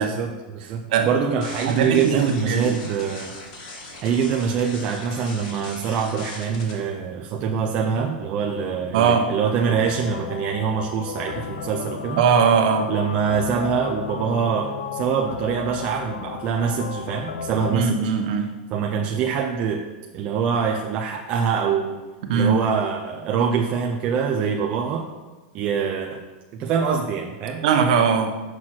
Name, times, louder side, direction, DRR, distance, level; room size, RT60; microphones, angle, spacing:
voice 1, 0.0-3.3 4.0-12.2 12.9-18.0 18.7-19.8 20.1-22.0 22.3-25.1 25.5-26.2 26.5-27.6, right 6 dB, 25° right, 1 dB, 0.5 m, -24 dB
sound 1, 1.4-6.7, left 2 dB, 50° left, 1.9 m, -39 dB
voice 2, 1.7-2.7 8.9-9.3 12.2-12.9 17.7-18.5 22.3-22.6 27.6-28.3, right 6 dB, 50° right, 5 dB, 1.0 m, -20 dB
sound 2, 9.6-17.8, left 7 dB, 70° left, 0.6 m, -33 dB
6.4 x 6.0 x 5.9 m, 1.2 s
supercardioid pair, 175°, 5 cm